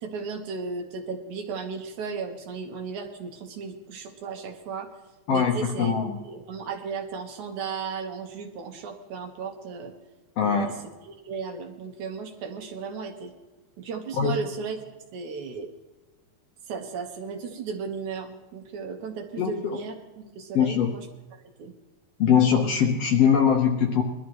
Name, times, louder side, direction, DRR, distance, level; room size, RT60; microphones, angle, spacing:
voice 1, 0.0-4.9 5.3-6.0 6.3-9.9 10.4-10.7 11.1-13.3 13.8-14.8 15.1-15.7 16.7-21.0 21.6-21.7, right 5 dB, 70° right, 3 dB, 2.7 m, -35 dB
voice 2, 5.3-6.2 10.4-10.8 14.2-14.4 19.4-19.8 20.5-20.9 22.2-24.0, left 7 dB, 65° left, 2 dB, 1.7 m, -22 dB
21.5 x 12.5 x 3.1 m, 1.2 s
omnidirectional pair, 3.8 m